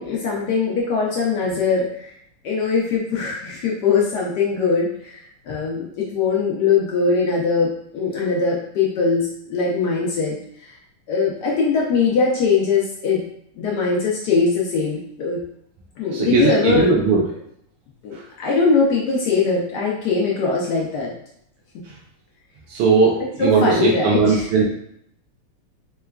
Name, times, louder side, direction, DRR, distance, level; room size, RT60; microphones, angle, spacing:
voice 1, 0.0-2.1 2.4-10.7 11.1-13.2 13.6-15.4 16.0-16.9 18.0-21.1 23.4-24.5, left 4 dB, 85° left, -3 dB, 0.9 m, -21 dB
voice 2, 16.1-17.2 18.1-18.2 21.9-22.0 22.7-24.7, right 4 dB, 90° right, -4 dB, 1.6 m, -18 dB
4.6 x 2.3 x 2.2 m, 0.72 s
omnidirectional pair, 2.4 m